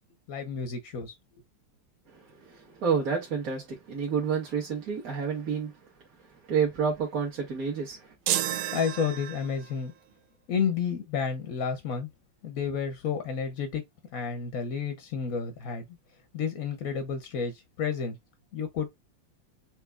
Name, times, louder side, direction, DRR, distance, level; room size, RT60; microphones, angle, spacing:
voice 1, 0.3-1.2 8.5-9.9 10.5-12.1 12.4-13.8 14.1-15.9 16.3-18.2 18.5-18.9, left 6 dB, 65° left, 0.9 m, -31 dB
voice 2, 2.5-5.7 6.5-8.1, right 6 dB, 45° right, 1.6 m, -29 dB
sound 1, 8.3-9.7, right 12 dB, 80° right, 1.3 m, -31 dB
5.7 x 2.9 x 2.4 m
omnidirectional pair, 2.3 m